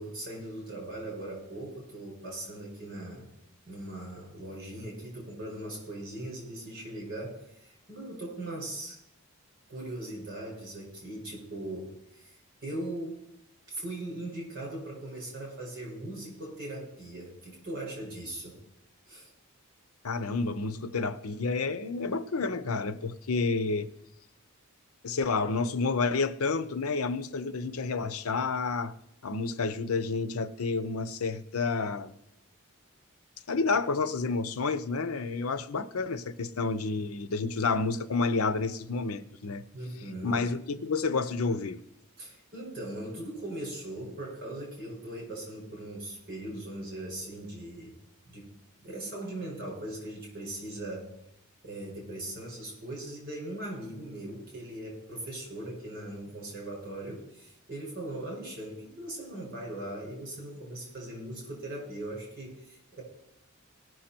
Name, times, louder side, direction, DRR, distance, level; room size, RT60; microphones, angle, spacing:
voice 1, 0.0-3.3 3.7-9.0 9.7-13.2 13.7-18.6 19.1-19.3 39.7-40.4 42.2-47.9 48.3-51.1 51.6-63.0, right 1 dB, 45° right, 5.6 m, -39 dB
voice 2, 20.0-23.9 25.0-28.9 29.2-32.1 33.5-39.6 40.2-41.8, left 4 dB, 90° left, 0.7 m, -30 dB
18.0 x 6.5 x 4.4 m
head